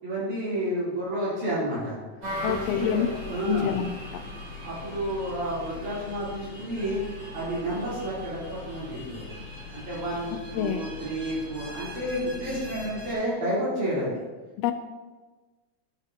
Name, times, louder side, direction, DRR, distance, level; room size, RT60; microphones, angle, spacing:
voice 1, 0.0-2.0 2.4-3.7 4.6-7.0 7.3-9.2 9.7-14.1, right 1 dB, 85° right, -9 dB, 4.8 m, -30 dB
sound 1, 2.2-13.1, left 2 dB, 35° right, 3.9 m, -39 dB
voice 2, 2.4-3.1 3.5-4.2 10.3-10.9 14.6-14.7, left 10 dB, 80° left, 8 dB, 1.5 m, -27 dB
12.5 x 8.1 x 2.8 m, 1.2 s
omnidirectional pair, 3.4 m